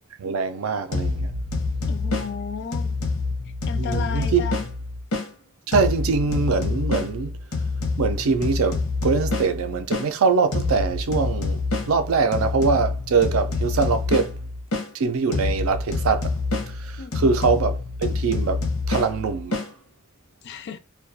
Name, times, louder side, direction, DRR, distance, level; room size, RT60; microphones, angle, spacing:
voice 1, 0.2-1.3 3.8-4.4 5.7-7.4 8.0-14.4 14.9-16.3 16.7-19.6, right 4 dB, 70° right, 0.4 m, -23 dB
sound 1, 0.9-5.3 5.7-10.1 10.5-14.9 15.3-19.7, left 3 dB, 85° left, 0.7 m, -27 dB
voice 2, 1.9-3.0 3.7-4.7 17.0-17.3 20.4-20.8, left 6 dB, 55° left, 0.4 m, -34 dB
2.3 x 2.2 x 2.6 m
head